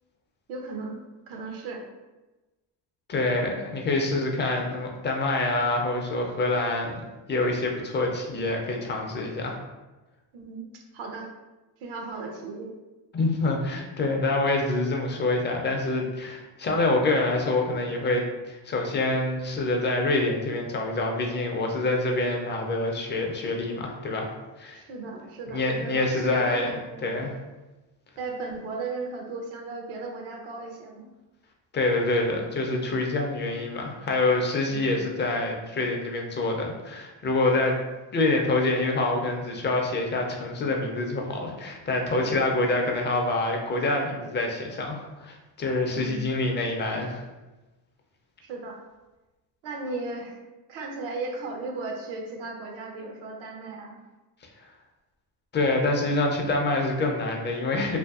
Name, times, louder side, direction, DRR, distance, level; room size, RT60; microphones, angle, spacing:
voice 1, 0.5-1.0 1.3-1.8 10.3-11.3 11.8-12.8 24.7-27.0 28.2-31.1 34.7-35.0 45.9-46.3 48.4-48.8 49.6-50.4 50.7-54.0, right 3 dB, 70° right, 2 dB, 0.7 m, -36 dB
voice 2, 3.1-9.5 13.1-24.3 24.6-24.8 25.5-26.7 27.0-27.3 31.7-37.8 38.1-47.2 55.5-58.0, left 2 dB, 25° left, 1 dB, 0.4 m, -26 dB
2.6 x 2.5 x 2.3 m, 1.1 s
supercardioid pair, 95°, 49 cm